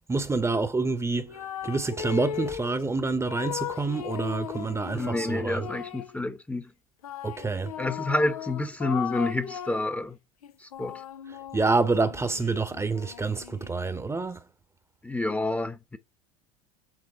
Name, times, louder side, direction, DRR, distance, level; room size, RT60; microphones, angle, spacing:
voice 1, 0.1-1.3 1.6-5.7 7.2-7.7 11.5-14.4, right 3 dB, 15° right, 1.0 m, -27 dB
sound 1, 1.3-2.7 3.3-6.2 7.0-9.9 10.4-14.1, left 10 dB, 90° left, 0.6 m, -37 dB
voice 2, 4.9-6.7 7.8-10.2 10.6-10.9 15.0-16.0, left 2 dB, 10° left, 0.9 m, -29 dB
7.7 x 3.7 x 5.8 m
hypercardioid pair, 85°, 18 cm